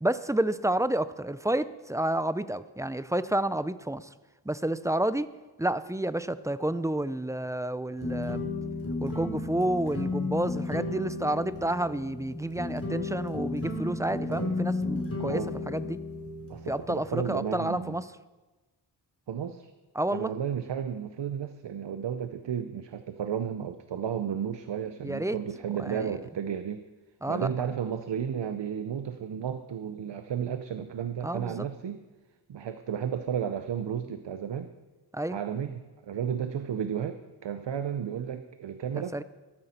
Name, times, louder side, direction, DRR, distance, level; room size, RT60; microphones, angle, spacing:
voice 1, 0.0-4.1 4.5-5.3 5.6-8.5 9.0-16.0 16.7-18.1 20.0-20.3 25.0-25.4 25.8-26.1 27.2-27.5 31.2-31.7 35.1-35.4 39.0-39.2, right 1 dB, 10° right, 14 dB, 0.4 m, -30 dB
sound 1, 8.0-17.3, left 2 dB, 35° left, 3.4 m, -33 dB
voice 2, 14.3-14.6 15.3-15.5 16.5-18.0 19.3-19.7 20.1-26.8 27.3-32.0 32.5-34.7 35.3-39.2, right 8 dB, 80° right, 9 dB, 0.7 m, -33 dB
13.5 x 13.5 x 4.3 m, 1.2 s
wide cardioid pair, 70°, 42 cm